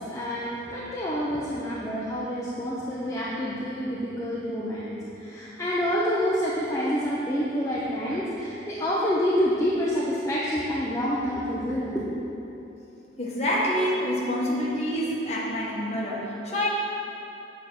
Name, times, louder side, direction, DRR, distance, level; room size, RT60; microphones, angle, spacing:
voice 1, 0.0-12.0, equal, 15° left, -8 dB, 0.7 m, -28 dB
voice 2, 13.2-16.7, equal, 35° left, -5 dB, 1.4 m, -27 dB
8.0 x 4.3 x 6.3 m, 2.9 s
head